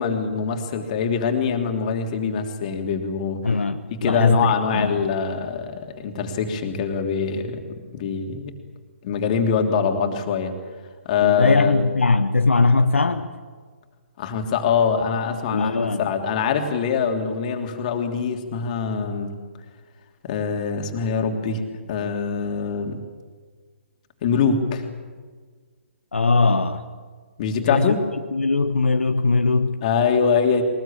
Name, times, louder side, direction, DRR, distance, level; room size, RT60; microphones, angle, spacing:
voice 1, 0.0-3.6 3.9-8.5 9.0-10.5 11.0-11.8 14.2-19.3 20.2-21.6 21.9-23.0 24.2-24.9 27.4-28.0 29.8-30.6, left 6 dB, 35° left, 4 dB, 3.0 m, -23 dB
voice 2, 3.4-4.5 4.7-4.9 11.2-13.3 15.5-16.1 26.1-26.8 27.6-28.0 28.3-29.8, left 3 dB, 70° left, 8 dB, 1.2 m, -20 dB
22.5 x 20.0 x 8.7 m, 1.5 s
figure-of-eight pair, 130°, 7 cm